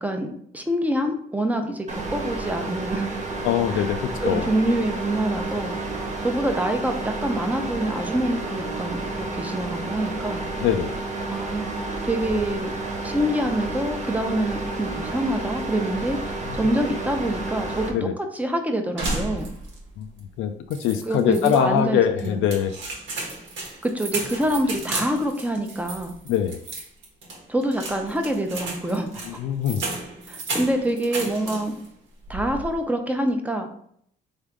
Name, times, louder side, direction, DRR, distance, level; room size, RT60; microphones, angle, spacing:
voice 1, 0.0-3.2 3.7-3.9 4.2-5.8 6.2-10.4 11.3-11.7 12.0-12.7 13.0-16.2 16.5-19.5 21.1-22.4 23.8-26.1 27.5-29.2 30.3-31.7 32.3-33.7, right 1 dB, 5° right, 5 dB, 0.7 m, -26 dB
sound 1, 1.9-17.9, right 2 dB, 35° right, 1.2 m, -31 dB
voice 2, 3.4-4.5 10.6-10.9 17.9-18.1 20.0-20.1 20.4-22.7 26.3-26.6 29.4-29.8, left 9 dB, 85° left, 7 dB, 0.4 m, -23 dB
sound 2, 19.0-19.9 20.2-20.3 20.7-21.6 22.2-31.9 32.2-32.7, right 2 dB, 75° right, 1.4 m, -33 dB
3.5 x 3.5 x 3.5 m, 0.66 s
cardioid pair, 90°, 20 cm